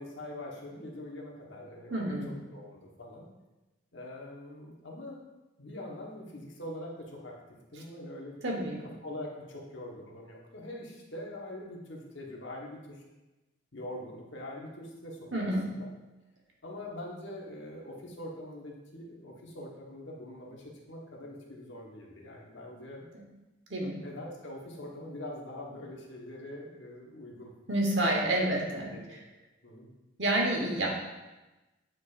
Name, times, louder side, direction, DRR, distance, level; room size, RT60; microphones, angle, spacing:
voice 1, 0.0-2.2 2.5-3.3 3.9-5.2 5.6-7.3 7.7-8.6 9.0-13.0 13.7-15.9 16.6-23.0 23.8-27.5 28.9-29.2 29.6-29.9, left 1 dB, 65° left, -2 dB, 1.3 m, -43 dB
voice 2, 1.9-2.3 8.4-8.9 15.3-15.8 23.7-24.0 27.7-29.2 30.2-30.9, right 1 dB, 65° right, -1 dB, 1.3 m, -29 dB
9.2 x 4.5 x 2.6 m, 1.1 s
head